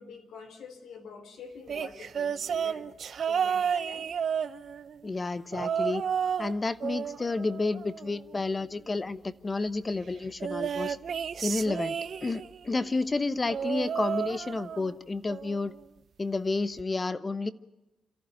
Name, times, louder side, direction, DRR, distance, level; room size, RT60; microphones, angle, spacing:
voice 1, 0.0-2.9 3.3-4.1, left 5 dB, 90° left, 6 dB, 3.9 m, -46 dB
sound 1, 1.7-5.0 5.5-6.5 6.8-8.4 10.4-12.6 13.5-15.0 15.3-15.7 16.8-16.9, right 7 dB, 60° right, 0.8 m, -32 dB
voice 2, 5.0-6.0 6.4-11.0 11.4-15.7 16.2-17.5, left 3 dB, 25° left, 14 dB, 1.1 m, -31 dB
27.5 x 14.5 x 9.1 m, 1.0 s
cardioid pair, 110°, 0 cm